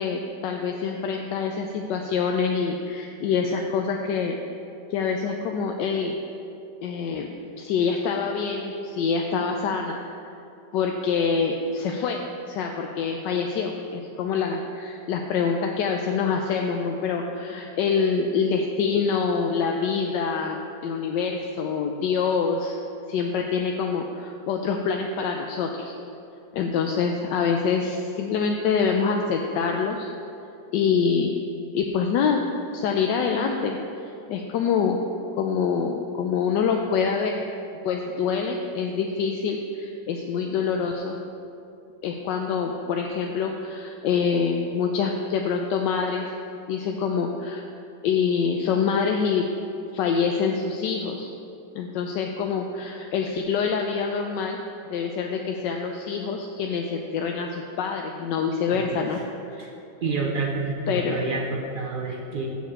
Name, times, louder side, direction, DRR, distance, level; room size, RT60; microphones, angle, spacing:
voice 1, 0.0-4.4 4.9-6.2 6.8-7.3 7.6-10.0 10.7-22.8 23.1-25.9 26.5-30.1 30.7-31.4 31.7-32.4 32.7-33.8 34.3-35.0 35.4-37.4 37.8-41.2 42.0-46.3 46.7-47.6 48.0-49.5 49.9-51.3 51.7-54.6 54.9-59.2 59.5-59.7 60.9-61.2, left 5 dB, 80° left, 2 dB, 1.2 m, -25 dB
voice 2, 58.7-59.2 59.6-59.7 60.0-62.5, right 3 dB, 65° right, -2 dB, 0.5 m, -29 dB
7.1 x 7.1 x 7.3 m, 2.6 s
omnidirectional pair, 1.9 m